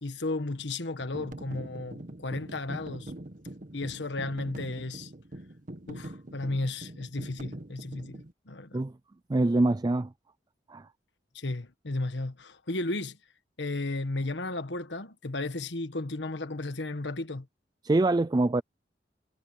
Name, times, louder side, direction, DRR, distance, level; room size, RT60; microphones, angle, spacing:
voice 1, 0.0-3.1 3.7-5.1 5.9-8.8 11.3-13.2 13.6-17.5, left 2 dB, 85° left, 1.4 m, -34 dB
sound 1, 1.0-8.3, right 1 dB, 50° right, 1.3 m, -43 dB
voice 2, 9.3-10.1 10.7-10.9 17.8-18.6, right 2 dB, 25° right, 0.4 m, -24 dB
head